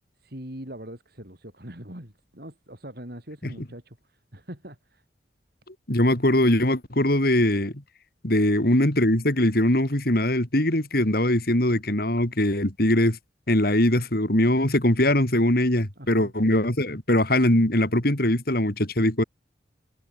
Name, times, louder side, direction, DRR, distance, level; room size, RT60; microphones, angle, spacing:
voice 1, 0.2-5.0 8.7-8.8 16.0-16.3, right 1 dB, 60° right, 6.6 m, -42 dB
voice 2, 5.9-7.7 8.2-13.2 13.5-19.2, left 1 dB, 55° left, 3.4 m, -21 dB
head